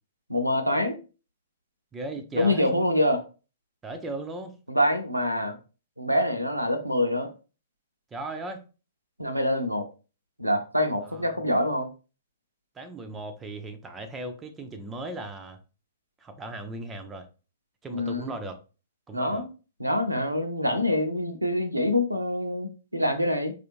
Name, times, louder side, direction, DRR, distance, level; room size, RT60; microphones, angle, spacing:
voice 1, 0.3-1.0 2.3-3.2 4.7-5.6 6.0-7.3 9.2-9.9 10.4-11.9 17.9-18.3 19.1-19.5 19.8-23.5, left 1 dB, 90° right, 0.6 m, -25 dB
voice 2, 1.9-2.8 3.8-4.6 8.1-8.6 11.1-11.2 12.8-15.6 16.2-17.3 17.8-18.6 19.1-19.5, right 2 dB, 15° right, 0.5 m, -37 dB
4.7 x 2.5 x 2.9 m
figure-of-eight pair, 110°, 0 cm